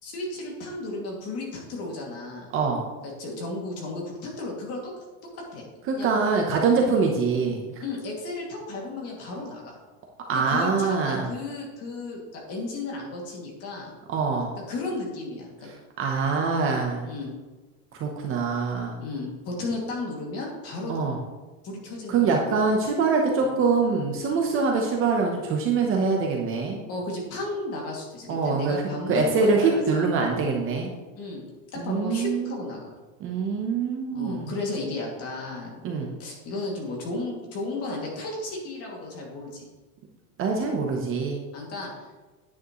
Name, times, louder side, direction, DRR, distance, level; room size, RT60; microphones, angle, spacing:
voice 1, 0.0-2.5 3.0-4.9 5.3-5.7 5.9-6.1 7.8-9.8 10.3-13.9 14.7-15.7 17.0-17.3 19.0-20.9 21.6-22.6 23.4-23.5 26.9-30.1 31.1-31.4 31.7-32.9 34.1-35.8 36.2-39.7 41.5-42.0, left 2 dB, 35° left, -2 dB, 2.4 m, -34 dB
voice 2, 2.5-2.9 5.9-7.8 10.3-11.3 14.1-14.5 16.0-17.1 17.9-19.0 20.9-21.2 22.1-26.8 28.3-30.9 31.7-32.6 33.2-34.5 35.8-36.2 40.4-41.4, right 4 dB, 30° right, 1 dB, 0.9 m, -24 dB
9.7 x 8.7 x 3.1 m, 1.2 s
cardioid pair, 175°, 44 cm